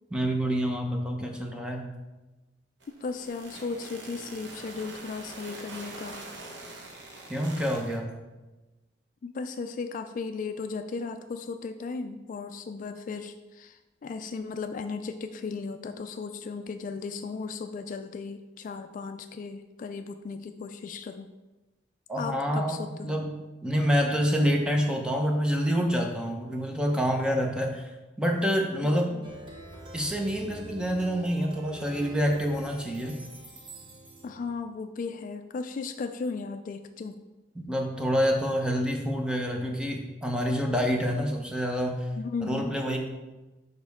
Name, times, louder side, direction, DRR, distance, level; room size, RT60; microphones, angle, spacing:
voice 1, 0.1-1.9 7.3-8.1 22.1-23.3 23.6-27.9 28.2-29.1 29.9-33.2 37.6-42.1 42.4-43.0, equal, 5° right, 2 dB, 0.7 m, -27 dB
sound 1, 2.8-8.0, right 2 dB, 75° right, 1.0 m, -44 dB
voice 2, 3.0-6.2 9.2-21.3 22.2-23.2 28.8-29.2 34.2-37.2 42.2-42.8, left 4 dB, 45° left, 8 dB, 0.3 m, -36 dB
Plucked string instrument, 29.2-34.6, equal, 30° right, 0.9 m, -45 dB
6.5 x 5.2 x 3.5 m, 1.1 s
head